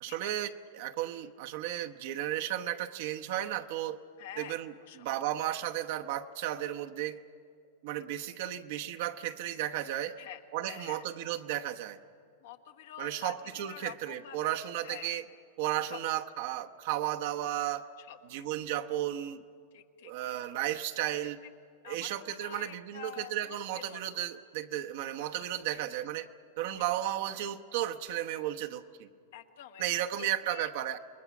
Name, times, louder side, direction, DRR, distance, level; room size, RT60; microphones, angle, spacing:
voice 1, 0.0-4.0 4.4-7.2 7.8-10.1 10.5-12.0 13.0-15.3 15.6-17.9 18.3-19.4 20.0-21.4 21.8-26.3 26.6-29.1 29.8-31.0, right 12 dB, 65° right, 6 dB, 1.0 m, -34 dB
voice 2, 4.2-4.6 4.9-5.0 10.2-10.4 10.7-11.0 12.4-13.3 13.7-14.6 14.8-15.1 15.9-16.0 18.0-18.2 19.7-20.4 21.8-24.2 25.7-25.8 26.7-26.8 29.3-30.7, left 11 dB, 70° left, 6 dB, 1.5 m, -47 dB
28.0 x 20.5 x 6.0 m, 2.2 s
hypercardioid pair, 125°, 0 cm